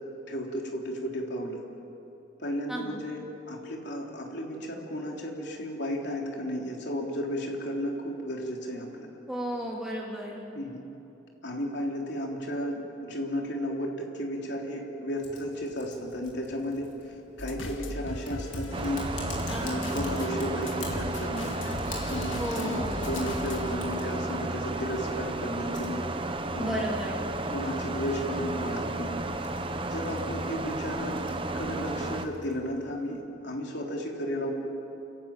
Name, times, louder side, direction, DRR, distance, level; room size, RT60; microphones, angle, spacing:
voice 1, 0.3-1.6 2.4-9.1 10.5-10.8 11.4-16.9 17.4-19.0 19.6-21.6 22.1-26.2 26.5-26.9 27.5-29.2 29.9-31.3 31.5-34.5, equal, 65° left, -1 dB, 3.6 m, -34 dB
voice 2, 2.7-3.0 9.3-10.4 19.5-19.9 22.4-23.0 26.5-27.2, equal, 5° right, -3 dB, 3.4 m, -34 dB
Typing, 15.2-33.2, left 2 dB, 40° left, 4.0 m, -47 dB
sound 1, 17.4-23.8, left 1 dB, 85° left, 1.8 m, -38 dB
sound 2, 18.7-32.3, right 2 dB, 25° right, 0.9 m, -33 dB
29.5 x 14.5 x 9.0 m, 2.9 s
head